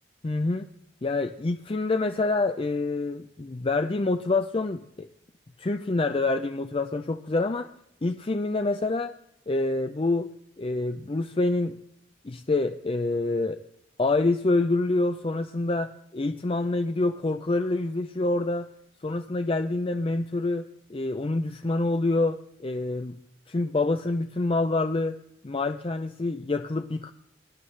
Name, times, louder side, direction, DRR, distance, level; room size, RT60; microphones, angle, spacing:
voice 1, 0.2-0.7 1.0-5.1 5.6-7.7 8.0-9.2 9.5-10.3 10.6-11.8 12.2-13.6 14.0-18.7 19.0-23.2 23.5-27.1, left 2 dB, 30° left, 8 dB, 0.4 m, -27 dB
18.5 x 11.0 x 3.2 m, 0.75 s
head